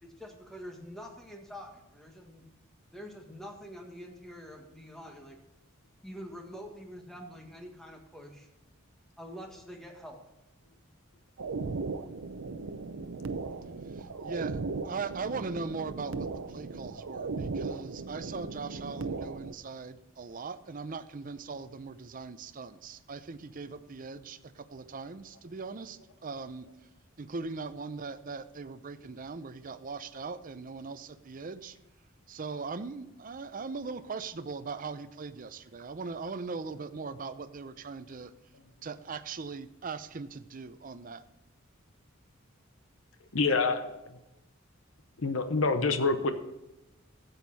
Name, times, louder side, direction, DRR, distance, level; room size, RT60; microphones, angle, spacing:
voice 1, 0.0-2.4 2.9-5.4 6.0-8.5 9.2-10.2, equal, ahead, 2 dB, 1.6 m, -46 dB
sound 1, 11.4-19.5, right 4 dB, 80° right, 0.6 m, -37 dB
voice 2, 13.9-14.6 14.8-26.7 27.2-31.8 32.3-38.3 38.8-41.2, right 4 dB, 40° right, 12 dB, 0.6 m, -40 dB
voice 3, 43.3-43.8 45.2-46.3, left 3 dB, 75° left, 8 dB, 0.9 m, -26 dB
13.0 x 8.1 x 4.1 m, 0.97 s
head